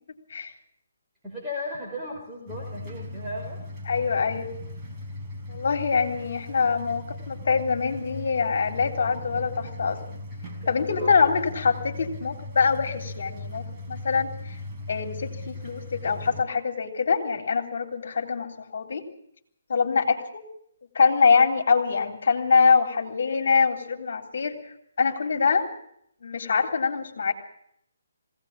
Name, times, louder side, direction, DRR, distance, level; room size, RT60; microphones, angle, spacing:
voice 1, 1.2-3.6 10.6-11.1, left 1 dB, 5° right, -5 dB, 5.3 m, -36 dB
sound 1, 2.5-16.4, left 1 dB, 25° right, 4.7 m, -38 dB
voice 2, 3.9-4.5 5.5-10.0 10.7-14.6 14.9-19.1 19.7-20.4 20.9-25.6 26.2-27.3, left 5 dB, 60° left, 4 dB, 3.6 m, -24 dB
20.5 x 17.5 x 7.5 m, 0.73 s
figure-of-eight pair, 145°, 0 cm